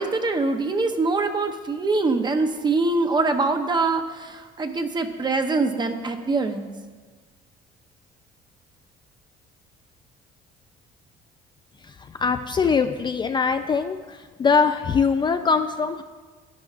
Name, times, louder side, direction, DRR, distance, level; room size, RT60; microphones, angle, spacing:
voice 1, 0.0-6.7, right 3 dB, 25° right, 6 dB, 0.8 m, -24 dB
voice 2, 11.8-16.0, left 5 dB, 25° left, 7 dB, 0.4 m, -22 dB
11.5 x 11.0 x 2.5 m, 1.4 s
cardioid pair, 110°, 17 cm